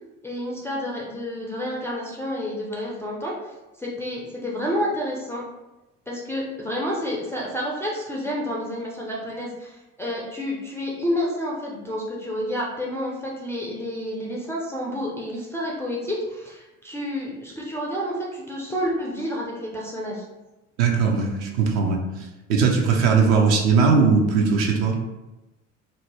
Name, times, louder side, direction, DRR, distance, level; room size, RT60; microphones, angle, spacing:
voice 1, 0.2-5.4 6.1-20.2, equal, 5° left, -5 dB, 0.4 m, -29 dB
voice 2, 20.8-22.0 22.5-25.0, right 5 dB, 55° right, 1 dB, 0.6 m, -19 dB
2.6 x 2.1 x 3.2 m, 1.0 s
figure-of-eight pair, 60°, 39 cm